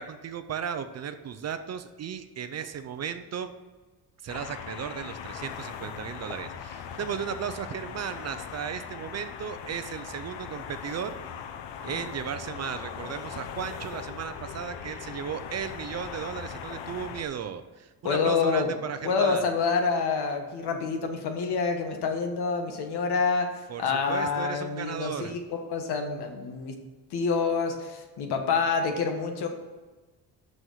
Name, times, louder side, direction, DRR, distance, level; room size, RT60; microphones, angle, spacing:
voice 1, 0.0-3.5 4.2-11.2 11.8-19.4 23.7-25.4, right 8 dB, 40° right, 10 dB, 0.5 m, -35 dB
sound 1, 4.3-17.2, left 8 dB, 90° left, 0.9 m, -40 dB
voice 2, 18.0-18.7 19.0-23.5 23.8-26.8 27.1-29.5, left 5 dB, 70° left, 4 dB, 1.5 m, -27 dB
6.3 x 6.3 x 7.2 m, 1.3 s
cardioid pair, 170°, 40 cm